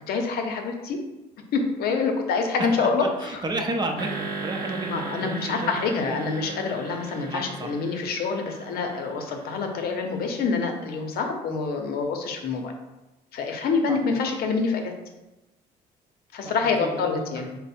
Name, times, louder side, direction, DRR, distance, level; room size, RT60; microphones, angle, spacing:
voice 1, 0.1-1.0 1.5-3.4 4.9-12.7 13.3-14.9 16.3-17.5, left 4 dB, 65° left, 4 dB, 0.7 m, -26 dB
voice 2, 2.6-6.2 7.3-7.7 13.9-14.0 16.4-17.6, right 2 dB, 25° right, 3 dB, 0.6 m, -32 dB
sound 1, 4.0-10.4, right 3 dB, 65° right, 0.8 m, -37 dB
4.6 x 2.1 x 4.2 m, 1.0 s
cardioid pair, 110°, 17 cm